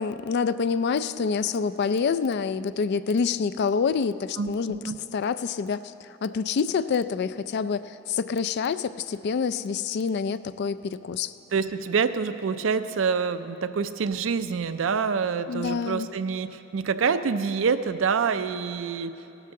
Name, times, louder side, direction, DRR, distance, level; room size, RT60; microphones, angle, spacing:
voice 1, 0.0-4.8 5.1-11.3 15.5-16.1, left 5 dB, 55° left, 14 dB, 0.3 m, -27 dB
voice 2, 4.4-5.0 11.5-19.2, right 5 dB, 70° right, 12 dB, 0.4 m, -26 dB
15.5 x 12.5 x 3.7 m, 2.8 s
head